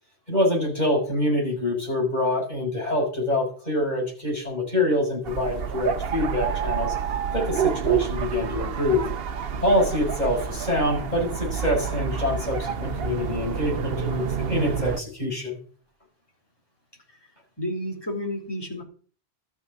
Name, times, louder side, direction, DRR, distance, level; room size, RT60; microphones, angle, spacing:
voice 1, 0.3-6.9 7.3-9.0 9.6-15.6, left 1 dB, 45° left, -1 dB, 6.2 m, -25 dB
sound 1, 5.2-15.0, right 7 dB, 65° right, 1.0 m, -28 dB
voice 2, 17.6-18.8, left 1 dB, 20° left, -1 dB, 4.0 m, -31 dB
12.5 x 6.3 x 9.4 m, 0.44 s
omnidirectional pair, 1.1 m